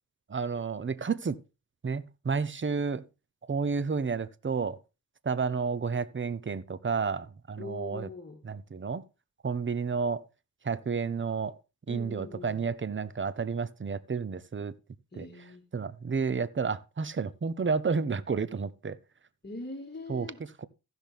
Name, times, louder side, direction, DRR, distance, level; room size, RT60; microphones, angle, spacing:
voice 1, 0.3-1.4 1.8-3.0 3.5-4.8 5.2-8.1 8.4-9.0 9.4-10.2 10.6-11.5 11.9-14.7 15.1-15.2 15.7-19.0 20.1-20.3 20.6-20.7, right 5 dB, 30° right, 0.8 m, -31 dB
voice 2, 7.6-8.4 11.9-12.6 15.1-15.7 19.4-20.4, left 3 dB, 25° left, 1.9 m, -42 dB
15.5 x 6.0 x 3.5 m
cardioid pair, 55°, 37 cm